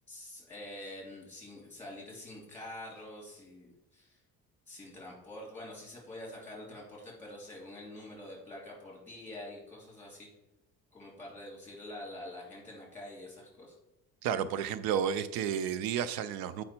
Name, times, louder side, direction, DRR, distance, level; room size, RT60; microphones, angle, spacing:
voice 1, 0.1-4.2 4.7-10.3 10.9-13.7, left 1 dB, 5° left, -3 dB, 2.7 m, -46 dB
voice 2, 14.2-16.6, right 8 dB, 90° right, 13 dB, 0.6 m, -31 dB
7.5 x 5.4 x 4.3 m, 0.88 s
cardioid pair, 180°, 35 cm